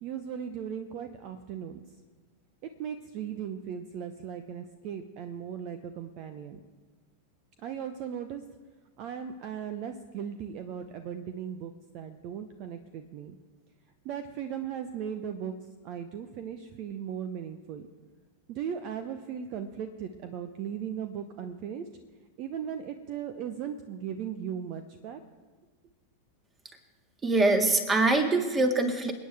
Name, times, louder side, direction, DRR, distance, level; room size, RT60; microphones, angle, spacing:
voice 1, 0.0-1.8 2.8-6.6 7.6-8.4 9.0-13.4 14.0-15.5 15.8-17.9 18.5-21.8 22.4-25.2, right 8 dB, 40° right, 9 dB, 0.8 m, -37 dB
voice 2, 27.2-29.1, right 2 dB, 15° right, 6 dB, 1.9 m, -24 dB
27.5 x 9.5 x 3.5 m, 1.4 s
figure-of-eight pair, 90°, 0 cm